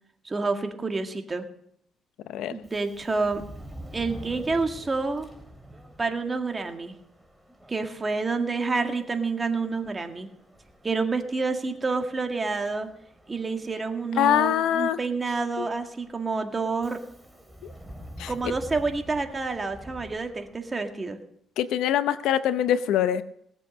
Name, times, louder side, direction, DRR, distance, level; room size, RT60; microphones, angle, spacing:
voice 1, 0.2-1.5 2.5-3.4 3.9-5.3 6.0-7.0 7.7-10.3 10.8-12.9 13.3-17.0 18.3-21.2, right 4 dB, 25° right, 5 dB, 1.9 m, -28 dB
Subway metro underground, 2.6-20.9, equal, 5° right, 3.1 m, -47 dB
voice 2, 14.2-15.0 15.6-15.7 18.2-18.3 21.6-23.2, left 10 dB, 85° left, 13 dB, 0.7 m, -23 dB
18.5 x 7.7 x 6.5 m, 0.71 s
cardioid pair, 90°, 0 cm